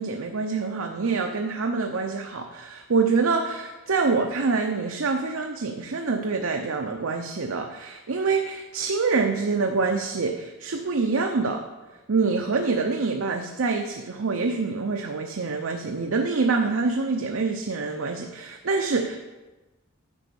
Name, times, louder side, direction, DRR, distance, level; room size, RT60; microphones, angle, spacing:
voice 1, 0.0-11.7 12.1-19.2, right 4 dB, 65° right, 4 dB, 0.7 m, -26 dB
9.8 x 5.3 x 6.9 m, 1.1 s
head